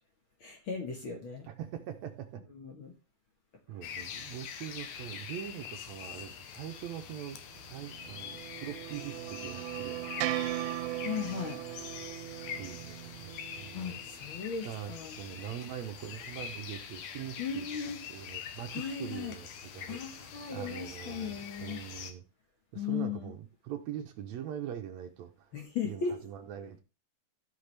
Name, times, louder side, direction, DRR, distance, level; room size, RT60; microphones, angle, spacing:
voice 1, 0.4-1.5 2.6-2.9 11.0-11.6 13.7-15.2 17.4-18.0 18.7-19.3 19.9-21.8 22.8-23.3 25.5-26.1, left 6 dB, 50° left, 1.8 m, -37 dB
voice 2, 1.5-2.4 3.7-10.1 12.6-17.7 18.1-22.2 22.7-25.5 25.8-26.8, right 10 dB, 70° right, 1.9 m, -43 dB
sound 1, 3.8-22.1, left 8 dB, 80° left, 2.4 m, -44 dB
sound 2, 7.7-14.1, right 15 dB, 90° right, 2.1 m, -38 dB
13.5 x 5.9 x 3.3 m
omnidirectional pair, 3.5 m